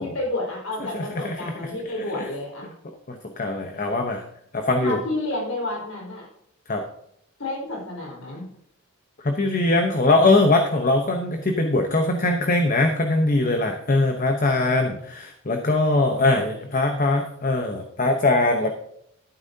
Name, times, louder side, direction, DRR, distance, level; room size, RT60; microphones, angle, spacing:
voice 1, 0.0-2.7 4.8-6.3 7.4-8.4, left 2 dB, 90° left, -2 dB, 4.6 m, -30 dB
voice 2, 0.8-1.7 2.1-2.3 3.1-4.2 4.5-5.0 6.7-6.8 9.2-18.7, left 2 dB, 40° left, 5 dB, 0.9 m, -22 dB
13.0 x 11.0 x 2.8 m, 0.72 s
head